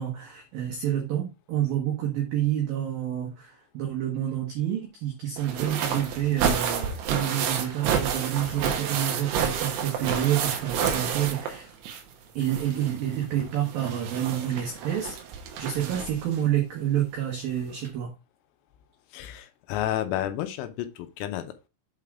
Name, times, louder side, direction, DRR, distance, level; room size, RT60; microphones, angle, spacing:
voice 1, 0.0-11.7 12.4-15.2 15.6-18.1, right 11 dB, 90° right, 2.0 m, -28 dB
sound 1, 5.4-12.1 12.4-16.4 17.4-17.5 17.9-18.0, right 7 dB, 70° right, 3.2 m, -30 dB
voice 2, 19.1-21.7, left 12 dB, 80° left, 3.2 m, -31 dB
8.3 x 3.7 x 4.8 m
omnidirectional pair, 6.0 m